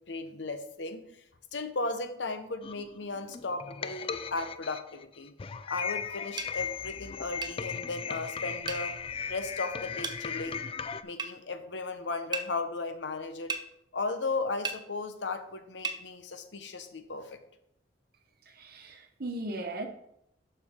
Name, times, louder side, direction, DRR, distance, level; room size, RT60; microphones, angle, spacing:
voice 1, 0.1-1.0 1.5-5.3 5.7-8.9 9.3-10.6 11.0-13.6 13.9-17.4, left 3 dB, 75° left, 0.9 m, -36 dB
sound 1, 2.6-11.0, left 6 dB, 30° left, 0.3 m, -37 dB
sound 2, 6.4-6.5 7.4-7.6 8.7-8.9 10.0-10.2 11.2-11.3 12.3-12.5 13.5-13.7 14.6-14.8 15.8-16.0, right 4 dB, 25° right, 0.7 m, -34 dB
voice 2, 18.5-19.9, right 2 dB, 60° right, 1.1 m, -37 dB
12.0 x 4.6 x 3.7 m
head